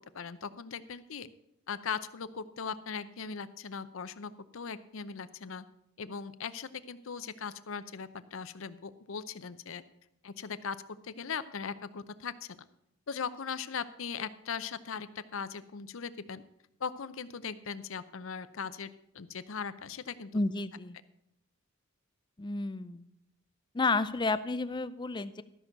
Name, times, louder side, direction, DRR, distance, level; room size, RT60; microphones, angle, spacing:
voice 1, 0.1-1.3 1.7-5.7 6.0-9.8 10.2-10.8 11.0-12.7 13.1-16.4 16.8-20.3, left 6 dB, 65° left, 14 dB, 0.6 m, -39 dB
voice 2, 20.3-21.0 22.4-23.1 23.7-25.4, left 3 dB, 20° left, 13 dB, 0.4 m, -31 dB
13.0 x 6.2 x 6.5 m, 0.79 s
head